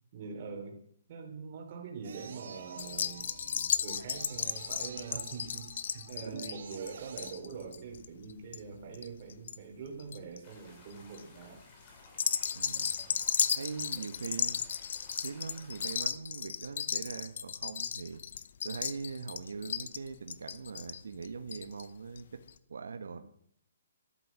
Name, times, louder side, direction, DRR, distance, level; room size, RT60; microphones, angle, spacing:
voice 1, 0.1-0.8 1.1-5.7 5.9-11.6 13.0-13.3 23.1-23.2, right 5 dB, 35° right, 2 dB, 3.6 m, -44 dB
sound 1, 2.0-7.3, right 6 dB, 55° right, 2.7 m, -50 dB
sound 2, 2.8-9.6 9.9-10.4 10.9-11.2 12.1-21.9 22.2-22.3 22.5-22.6, left 7 dB, 55° left, 0.8 m, -35 dB
voice 2, 6.2-6.5 12.5-13.0 13.5-14.7 15.2-18.2 18.6-22.4 22.7-23.2, right 5 dB, 90° right, 7 dB, 1.5 m, -41 dB
sound 3, 10.4-16.1, left 3 dB, 30° left, 4.2 m, -57 dB
13.5 x 11.5 x 7.5 m, 0.66 s
hypercardioid pair, 170°, 0 cm